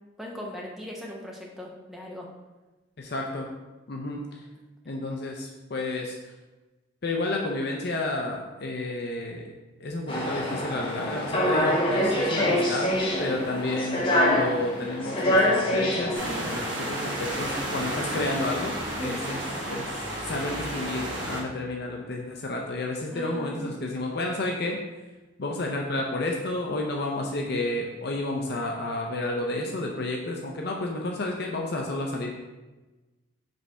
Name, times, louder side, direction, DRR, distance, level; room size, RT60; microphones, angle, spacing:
voice 1, 0.2-2.3 19.0-19.3 23.1-23.7, left 1 dB, ahead, -3 dB, 0.9 m, -38 dB
voice 2, 3.0-3.5 3.9-4.4 4.9-6.2 7.0-9.4 9.8-12.9 13.2-19.4 19.7-24.8 25.4-32.4, left 2 dB, 50° left, 0 dB, 0.6 m, -31 dB
sound 1, 10.1-20.5, left 1 dB, 25° left, 0.9 m, -26 dB
sound 2, 16.1-21.4, right 1 dB, 65° right, 1.6 m, -32 dB
5.3 x 3.3 x 5.4 m, 1.1 s
head